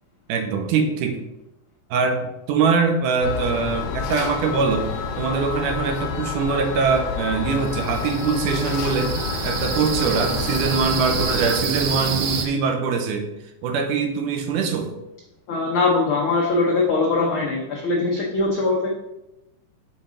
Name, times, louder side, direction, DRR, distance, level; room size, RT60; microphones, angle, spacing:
voice 1, 0.3-1.2 1.9-4.9 5.2-9.1 9.4-13.3 13.6-14.9, right 5 dB, 85° right, 5 dB, 2.3 m, -23 dB
sound 1, 3.2-11.6, left 6 dB, 70° left, 1.5 m, -29 dB
sound 2, 7.7-12.5, right 5 dB, 70° right, 1.8 m, -28 dB
voice 2, 15.5-19.0, left 3 dB, 90° left, -2 dB, 1.1 m, -21 dB
6.4 x 4.0 x 5.0 m, 0.94 s
omnidirectional pair, 3.5 m